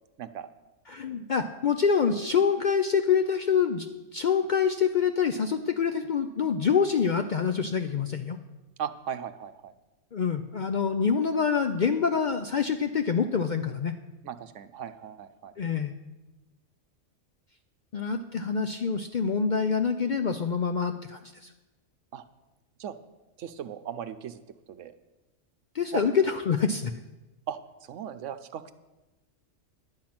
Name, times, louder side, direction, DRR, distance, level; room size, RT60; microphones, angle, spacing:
voice 1, 0.9-3.9 4.1-8.4 10.1-13.9 15.6-15.9 17.9-21.5 25.7-26.9, left 6 dB, 55° left, 7 dB, 0.5 m, -26 dB
voice 2, 8.8-9.7 14.2-15.5 22.1-22.2 22.8-22.9 23.4-24.4 24.7-24.9 25.9-26.0 27.5-28.7, right 9 dB, 75° right, 11 dB, 1.0 m, -37 dB
10.5 x 5.9 x 8.7 m, 1.1 s
omnidirectional pair, 1.3 m